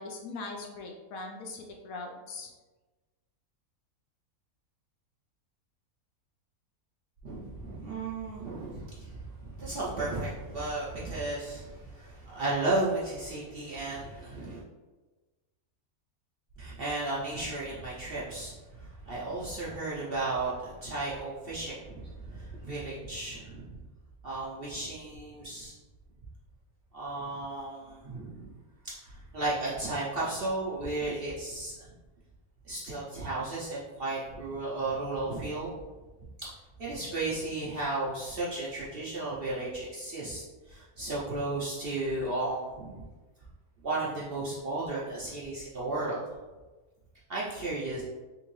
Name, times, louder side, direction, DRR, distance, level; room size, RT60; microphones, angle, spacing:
voice 1, 0.0-2.5, left 3 dB, 70° left, 1 dB, 1.0 m, -40 dB
voice 2, 7.2-14.6 16.6-23.7 24.2-25.7 26.9-28.5 28.8-31.7 32.6-35.7 36.4-36.5 36.8-43.1 43.8-46.2 47.3-48.0, right 2 dB, 50° right, -7 dB, 0.7 m, -34 dB
3.6 x 3.0 x 3.0 m, 1.2 s
omnidirectional pair, 1.6 m